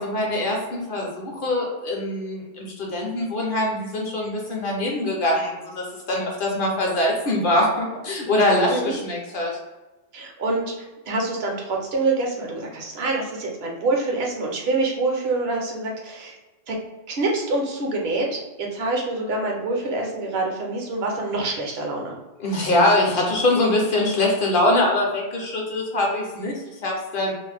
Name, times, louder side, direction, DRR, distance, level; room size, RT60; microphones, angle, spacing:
voice 1, 0.0-9.5 22.4-27.3, left 1 dB, 55° left, -1 dB, 0.7 m, -23 dB
voice 2, 8.7-9.0 10.1-16.3 16.7-16.8 17.1-22.1, right 2 dB, 60° right, 0 dB, 0.8 m, -26 dB
2.5 x 2.1 x 3.2 m, 1.1 s
omnidirectional pair, 1.3 m